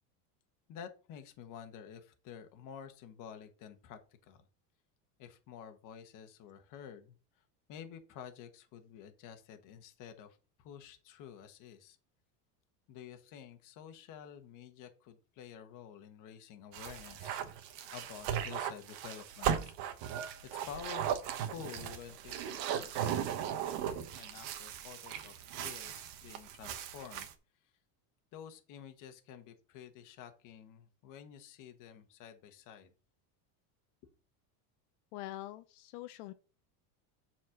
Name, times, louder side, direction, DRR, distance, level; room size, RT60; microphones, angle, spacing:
voice 1, 0.7-4.0 4.3-4.4 5.2-7.1 7.7-12.0 12.9-17.4 17.9-19.7 20.4-21.1 21.5-27.3 28.3-32.9, left 8 dB, 45° left, 1.3 m, -50 dB
sound 1, 16.7-27.3, right 9 dB, 55° right, 1.2 m, -37 dB
voice 2, 35.1-36.3, left 16 dB, 80° left, 0.8 m, -44 dB
7.2 x 4.4 x 6.3 m
cardioid pair, 155°, 45 cm